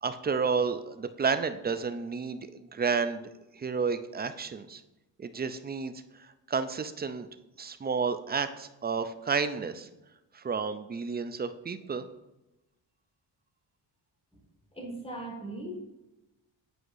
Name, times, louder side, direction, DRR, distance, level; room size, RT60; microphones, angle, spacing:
voice 1, 0.0-3.2 3.5-4.8 5.2-7.3 7.6-9.9 10.3-12.1, right 5 dB, 25° right, 11 dB, 0.4 m, -31 dB
voice 2, 14.8-15.8, right 1 dB, 15° left, 0 dB, 1.8 m, -38 dB
8.1 x 4.6 x 2.6 m, 0.98 s
cardioid pair, 65°, 45 cm